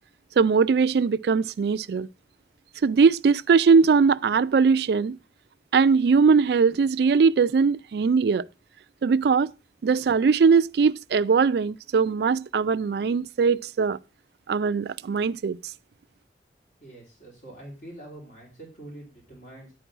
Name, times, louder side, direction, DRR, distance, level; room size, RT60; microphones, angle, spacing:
voice 1, 0.4-2.1 2.8-5.2 5.7-8.4 9.0-9.5 9.8-14.0 14.5-15.6, right 5 dB, 65° right, 0.3 m, -20 dB
voice 2, 16.8-19.7, right 1 dB, 45° left, 3.2 m, -44 dB
10.0 x 4.6 x 6.1 m
head